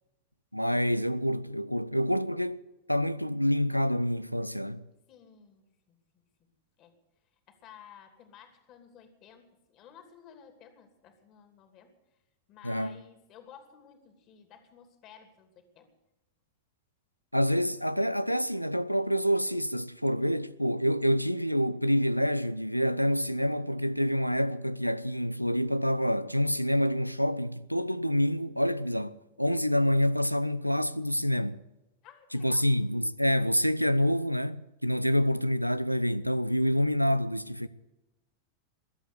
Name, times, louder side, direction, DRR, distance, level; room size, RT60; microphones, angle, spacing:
voice 1, 0.5-2.6 2.9-4.8 12.6-13.0 17.3-31.6 32.3-37.7, equal, 90° left, 0.6 m, -27 dB
voice 2, 5.1-6.2 6.8-7.0 7.5-11.9 12.5-15.9 29.3-29.4 32.0-32.7, left 8 dB, 35° left, 2.9 m, -54 dB
21.5 x 8.3 x 8.2 m
figure-of-eight pair, 90°, 0 cm